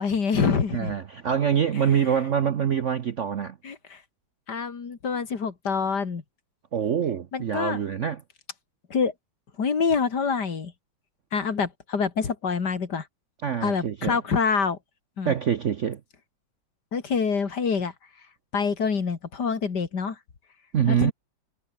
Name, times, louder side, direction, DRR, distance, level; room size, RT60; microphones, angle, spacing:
voice 1, 0.0-0.9 1.7-2.2 3.6-4.0 4.5-6.2 7.3-7.8 8.9-9.1 9.6-10.7 11.3-13.1 13.6-14.8 15.2-15.3 16.9-17.9 18.5-20.2 20.9-21.1, left 5 dB, 55° left, 2.8 m, -26 dB
voice 2, 0.7-3.6 6.7-8.2 13.4-14.2 15.2-16.0 20.7-21.1, right 8 dB, 55° right, 0.9 m, -25 dB
omnidirectional pair, 2.1 m